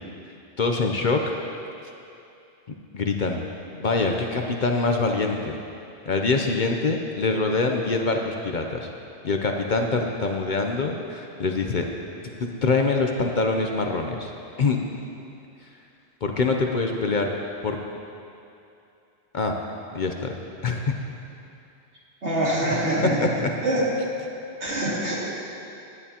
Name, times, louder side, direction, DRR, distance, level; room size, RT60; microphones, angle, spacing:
voice 1, 0.6-1.2 2.9-3.4 3.8-5.5 6.1-8.9 9.2-11.8 12.4-14.3 14.6-14.8 16.2-17.3 17.6-17.8 19.3-19.5 19.9-20.3 20.6-20.9 23.4-23.5, left 3 dB, 50° left, 3 dB, 0.7 m, -24 dB
voice 2, 22.2-23.2 23.6-23.9 24.6-25.2, right 1 dB, 75° right, -6 dB, 2.5 m, -24 dB
16.0 x 10.5 x 2.9 m, 2.7 s
omnidirectional pair, 1.2 m